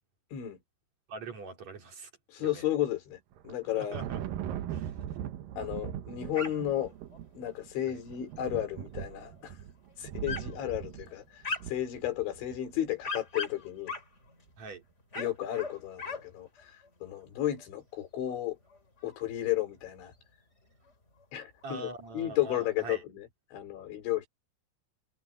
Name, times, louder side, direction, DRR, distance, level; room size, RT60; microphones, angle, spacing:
voice 1, 1.1-2.1 2.4-2.7 3.8-4.2 4.7-4.9 7.9-8.0 14.6-14.8 21.6-23.0, right 3 dB, 35° right, 4.5 m, -43 dB
voice 2, 2.3-4.0 5.6-6.9 7.4-9.6 10.0-13.9 15.2-18.6 19.0-20.1 21.3-24.3, left 13 dB, 65° left, 5.9 m, -33 dB
Thunder, 3.3-12.8, right 10 dB, 85° right, 2.0 m, -40 dB
sound 1, 6.3-6.8 7.1-7.2 7.8-8.4 9.0-9.2 9.6-9.7 10.3-10.5 11.0-11.9 12.5-14.5 15.0-16.3 16.6-16.9 17.1-17.2 17.6-17.7 18.3-19.2 19.5-19.6 19.9-20.0 20.9-21.0 21.2-21.3 21.5-22.1, left 3 dB, 15° left, 3.1 m, -39 dB
omnidirectional pair, 5.8 m